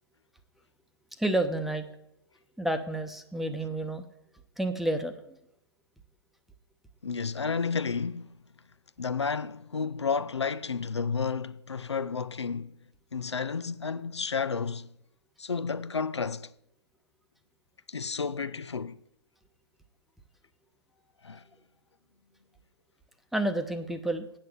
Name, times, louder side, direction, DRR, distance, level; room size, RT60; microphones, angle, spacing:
voice 1, 1.2-1.8 2.6-4.0 4.6-5.1 23.3-24.3, right 1 dB, ahead, 0.8 m, -29 dB
voice 2, 7.0-8.4 9.0-12.8 13.1-14.9 15.4-16.5 17.9-19.0 21.2-21.4, left 5 dB, 90° left, 0.5 m, -31 dB
8.7 x 6.6 x 7.3 m
figure-of-eight pair, 120°, 14 cm